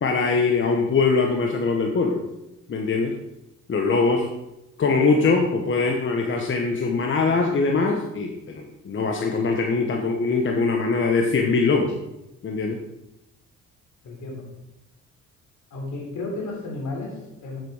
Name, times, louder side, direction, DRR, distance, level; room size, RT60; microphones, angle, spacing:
voice 1, 0.0-2.2 2.7-3.1 3.7-4.3 4.8-11.9 12.4-12.8, left 4 dB, 40° left, 2 dB, 1.2 m, -22 dB
voice 2, 14.0-14.4 15.7-17.6, left 2 dB, 70° left, -1 dB, 3.5 m, -33 dB
7.6 x 7.6 x 4.9 m, 0.91 s
cardioid pair, 90°, 30 cm